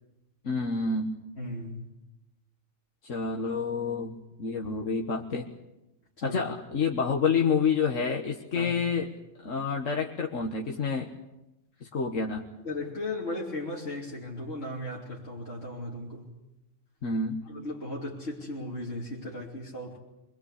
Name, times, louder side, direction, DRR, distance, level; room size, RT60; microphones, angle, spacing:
voice 1, 0.4-1.2 3.0-5.4 6.2-9.1 9.4-11.1 11.9-12.4 17.0-17.4, left 5 dB, 75° left, 0 dB, 1.9 m, -28 dB
voice 2, 1.4-1.8 6.2-6.4 8.6-8.7 12.6-16.3 17.5-20.0, left 1 dB, 55° left, -5 dB, 3.5 m, -36 dB
25.0 x 22.0 x 8.3 m, 0.93 s
omnidirectional pair, 1.3 m